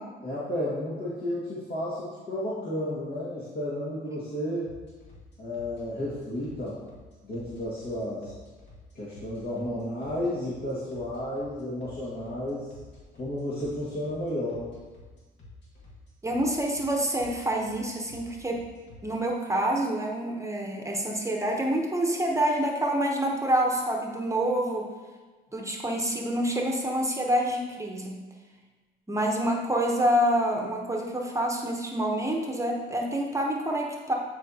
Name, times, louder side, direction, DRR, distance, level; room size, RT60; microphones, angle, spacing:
voice 1, 0.2-4.7 5.4-6.8 7.2-8.3 8.9-12.7 13.2-14.7, left 1 dB, 55° left, -8 dB, 1.9 m, -32 dB
sound 1, 4.6-19.0, left 1 dB, 70° left, 2.2 m, -50 dB
voice 2, 16.2-18.7 19.0-24.9 25.5-28.2 29.1-34.2, right 1 dB, 15° right, 0 dB, 0.9 m, -27 dB
9.7 x 4.6 x 2.8 m, 1.3 s
cardioid pair, 90°, 20 cm